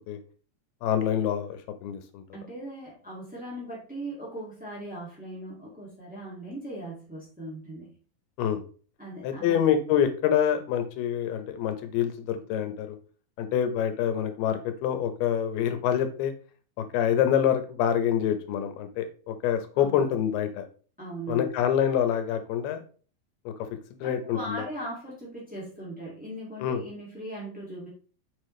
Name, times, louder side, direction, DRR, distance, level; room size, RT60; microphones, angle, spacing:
voice 1, 0.8-2.2 8.4-8.6 9.2-12.9 13.4-16.3 16.8-20.7 21.3-22.8 23.5-23.6 24.0-24.7 26.6-26.8, left 9 dB, 85° left, 8 dB, 2.9 m, -26 dB
voice 2, 2.3-7.9 9.0-9.6 19.8-20.0 21.0-21.5 24.0-27.9, right 1 dB, 5° right, -6 dB, 0.8 m, -39 dB
6.9 x 6.7 x 3.2 m, 0.40 s
omnidirectional pair, 4.4 m